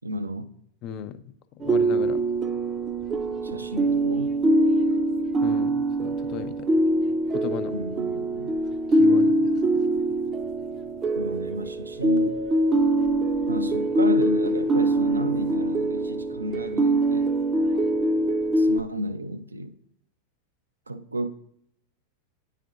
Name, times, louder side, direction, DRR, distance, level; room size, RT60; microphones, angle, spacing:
voice 1, 0.0-0.5 3.4-4.3 7.7-8.5 11.2-12.3 13.5-17.3 18.6-19.7 20.9-21.3, right 1 dB, 80° right, 10 dB, 0.4 m, -32 dB
voice 2, 0.8-1.2 1.6-2.2 5.4-6.7 7.3-7.8 8.9-9.6, left 9 dB, 40° left, 12 dB, 0.4 m, -35 dB
sound 1, 1.6-18.8, right 1 dB, 20° right, 0.5 m, -23 dB
Keyboard (musical), 12.0-14.5, right 2 dB, 85° left, 0.5 m, -40 dB
9.9 x 4.1 x 2.6 m, 0.72 s
figure-of-eight pair, 90°, 0 cm